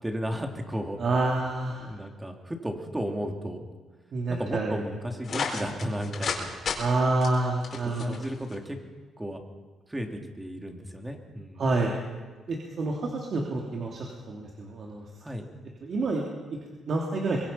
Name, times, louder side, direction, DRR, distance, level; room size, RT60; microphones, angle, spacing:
voice 1, 0.0-1.0 1.8-3.7 4.3-6.5 7.9-8.8 9.2-9.4 9.9-11.6 15.2-15.5, equal, 15° right, 3 dB, 3.1 m, -34 dB
voice 2, 1.0-1.9 4.1-4.8 6.8-8.2 11.6-11.9 12.5-15.0 15.8-16.3 16.9-17.4, right 2 dB, 50° right, -1 dB, 3.1 m, -28 dB
sound 1, 5.2-6.4 6.6-6.8 7.2-8.5, left 6 dB, 55° left, 4.7 m, -32 dB
24.5 x 21.5 x 5.8 m, 1.4 s
cardioid pair, 90°, 0 cm